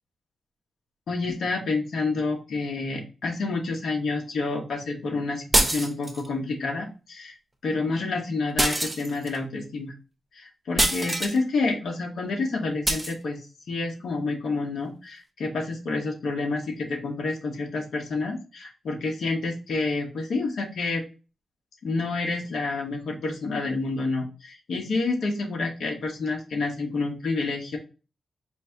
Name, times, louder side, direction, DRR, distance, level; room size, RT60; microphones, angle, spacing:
voice 1, 1.1-7.3 7.6-9.9 10.3-21.0 21.8-27.8, left 3 dB, 70° left, 1 dB, 1.1 m, -29 dB
sound 1, 5.5-6.3 8.6-9.4 10.8-11.4 12.9-13.1, right 1 dB, 10° right, 0.6 m, -24 dB
5.1 x 2.7 x 3.4 m, 0.32 s
wide cardioid pair, 145°, 0 cm